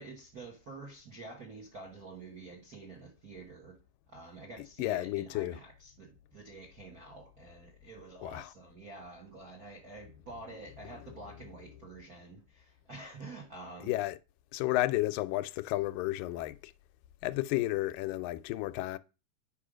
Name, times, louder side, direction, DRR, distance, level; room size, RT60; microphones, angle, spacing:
voice 1, 0.0-3.8 4.1-13.9, right 3 dB, 55° right, 1.0 m, -48 dB
voice 2, 4.8-5.6 8.2-8.5 11.0-11.2 13.8-14.2 14.5-16.7 17.2-19.0, left 17 dB, 90° left, 2.2 m, -32 dB
8.5 x 5.5 x 5.0 m
omnidirectional pair, 3.9 m